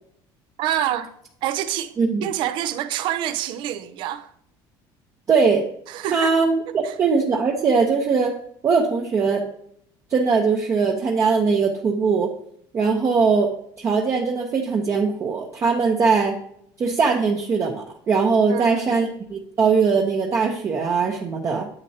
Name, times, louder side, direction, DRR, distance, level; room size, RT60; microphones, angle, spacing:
voice 1, 0.6-1.1 1.4-1.9 2.2-4.3 5.9-6.3 6.8-6.9 18.5-19.0, right 11 dB, 60° right, 0.7 m, -27 dB
voice 2, 5.3-5.6 6.1-8.3 8.6-9.4 10.1-12.3 12.7-13.5 13.8-16.4 16.8-21.7, right 5 dB, 30° right, 0.9 m, -20 dB
9.7 x 8.0 x 2.9 m
cardioid pair, 140°, 9 cm